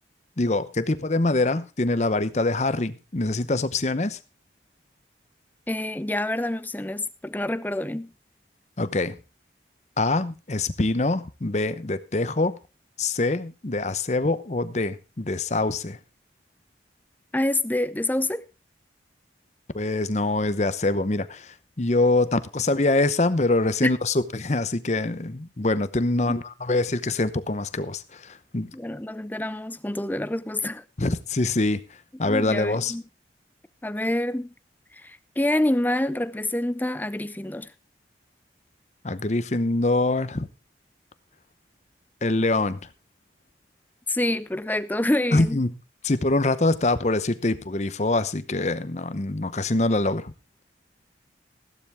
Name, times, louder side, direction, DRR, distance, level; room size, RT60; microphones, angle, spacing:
voice 1, 0.4-4.2 8.8-9.2 10.0-12.6 13.0-16.0 19.7-28.7 31.0-31.8 32.2-32.9 39.0-40.5 42.2-42.8 45.3-45.7 46.0-50.3, left 2 dB, 40° left, 0.8 m, -24 dB
voice 2, 5.7-8.1 17.3-18.4 23.8-23.9 26.2-26.4 28.7-30.8 32.2-33.0 33.8-34.5 34.9-37.7 44.1-45.6, left 1 dB, 10° left, 0.5 m, -27 dB
14.5 x 12.5 x 3.5 m
head